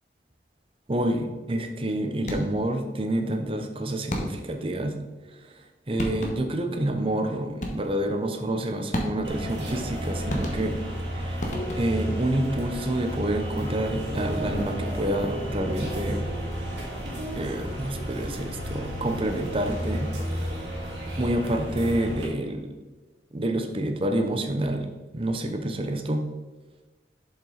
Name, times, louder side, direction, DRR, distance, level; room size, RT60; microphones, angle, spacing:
voice 1, 0.9-5.0 5.9-10.8 11.1-11.4 11.8-16.3 17.4-20.1 21.2-22.7 23.3-26.2, right 1 dB, 30° right, 5 dB, 0.7 m, -28 dB
sound 1, 2.2-2.7 4.1-4.6 5.6-5.7 6.0-6.6 7.6-8.1 8.9-9.5 10.3-11.0 11.4-12.1, equal, 45° left, 1.2 m, -33 dB
sound 2, 9.2-22.2, equal, 80° right, 2.4 m, -32 dB
7.3 x 5.6 x 4.0 m, 1.3 s
head